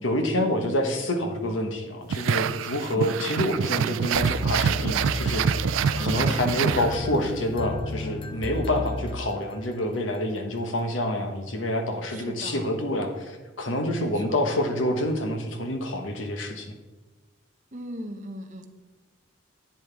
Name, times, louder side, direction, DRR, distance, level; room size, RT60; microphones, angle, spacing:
voice 1, 0.0-5.5 6.0-16.7, left 1 dB, 80° left, 4 dB, 1.4 m, -27 dB
sound 1, 2.1-7.3, right 7 dB, 85° right, 0.3 m, -26 dB
sound 2, 4.1-9.8, left 2 dB, 25° left, 0.5 m, -33 dB
voice 2, 6.0-6.4 12.1-12.8 13.9-14.5 17.7-18.7, right 1 dB, 40° right, 4 dB, 0.9 m, -38 dB
10.5 x 8.1 x 3.5 m, 1.2 s
head